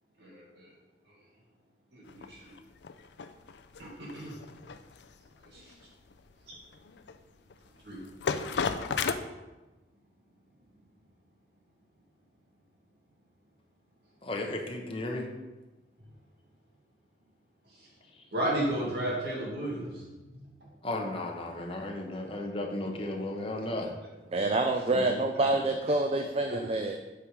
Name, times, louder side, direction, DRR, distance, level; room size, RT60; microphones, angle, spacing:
voice 1, 0.2-0.7 1.9-2.6 3.8-4.4 5.5-5.7 6.5-6.6 7.8-8.0 17.7-17.9 18.3-20.7 26.5-26.6, right 1 dB, 65° right, -4 dB, 2.2 m, -34 dB
sound 1, 2.1-9.1, left 5 dB, 75° left, 0.5 m, -35 dB
voice 2, 14.2-15.3 20.8-23.9 24.9-25.2, left 2 dB, 30° left, 1 dB, 1.0 m, -34 dB
voice 3, 24.3-27.0, right 2 dB, 35° right, 4 dB, 0.4 m, -27 dB
8.5 x 4.8 x 5.1 m, 1.1 s
head